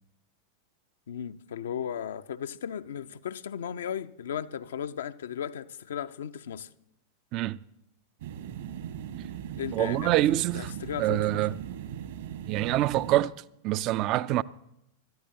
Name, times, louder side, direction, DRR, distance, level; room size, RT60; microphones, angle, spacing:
voice 1, 1.1-6.7 9.6-11.5, left 8 dB, 65° left, 0.6 m, -36 dB
sound 1, 8.2-13.2, right 9 dB, 60° right, 1.5 m, -39 dB
voice 2, 9.7-10.7 11.0-11.5 12.5-13.3 13.6-14.4, right 15 dB, 40° right, 0.5 m, -25 dB
26.5 x 13.5 x 2.8 m
figure-of-eight pair, 90°, 0 cm